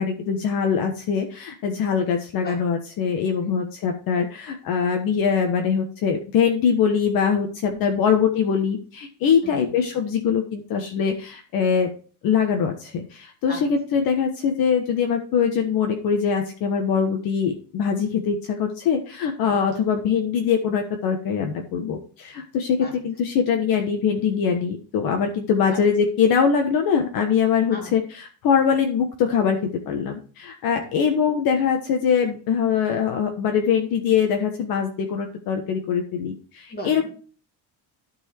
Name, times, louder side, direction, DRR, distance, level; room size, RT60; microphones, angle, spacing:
voice 1, 0.0-11.9 12.2-37.1, left 7 dB, 60° left, 4 dB, 1.4 m, -23 dB
voice 2, 2.3-2.6 3.4-3.6 7.7-8.2 9.4-9.7 13.5-13.7 19.4-19.6 22.8-22.9 25.7-25.8 27.7-27.9 30.8-30.9 36.7-37.1, left 1 dB, 25° left, 2 dB, 2.5 m, -38 dB
12.5 x 4.7 x 4.5 m, 0.39 s
cardioid pair, 175°, 41 cm